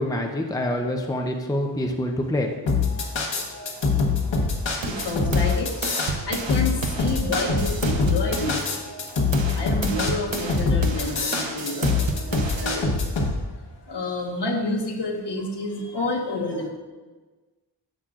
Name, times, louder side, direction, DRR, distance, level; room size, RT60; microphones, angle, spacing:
voice 1, 0.0-2.5, left 1 dB, 10° left, 3 dB, 0.7 m, -26 dB
sound 1, 2.7-13.3, left 4 dB, 80° left, 1.3 m, -23 dB
voice 2, 4.8-6.0 6.3-8.6 9.5-11.9 12.2-12.9 13.9-16.7, left 2 dB, 65° left, 1 dB, 1.4 m, -29 dB
sound 2, 4.8-8.7 9.1-12.7, right 4 dB, 90° right, 0.8 m, -32 dB
11.0 x 7.5 x 2.5 m, 1.3 s
wide cardioid pair, 85°, 44 cm